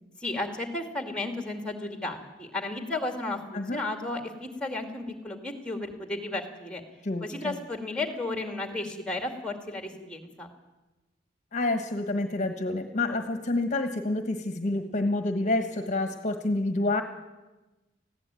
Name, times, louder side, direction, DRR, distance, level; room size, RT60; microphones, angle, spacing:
voice 1, 0.2-6.8 7.2-10.5, left 2 dB, 5° left, 6 dB, 2.3 m, -33 dB
voice 2, 7.0-7.6 11.5-17.0, left 2 dB, 40° left, 7 dB, 1.3 m, -28 dB
19.5 x 15.5 x 8.9 m, 1.1 s
head